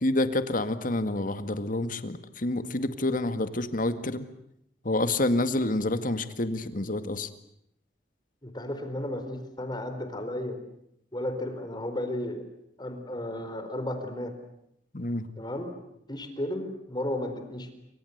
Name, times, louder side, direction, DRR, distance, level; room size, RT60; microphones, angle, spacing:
voice 1, 0.0-4.3 4.8-7.3 14.9-15.3, left 2 dB, 50° left, 10 dB, 2.0 m, -28 dB
voice 2, 8.4-10.6 11.1-12.4 12.8-14.3 15.4-15.7 16.1-17.7, left 1 dB, 25° left, 8 dB, 4.4 m, -33 dB
27.5 x 25.5 x 8.2 m, 0.77 s
head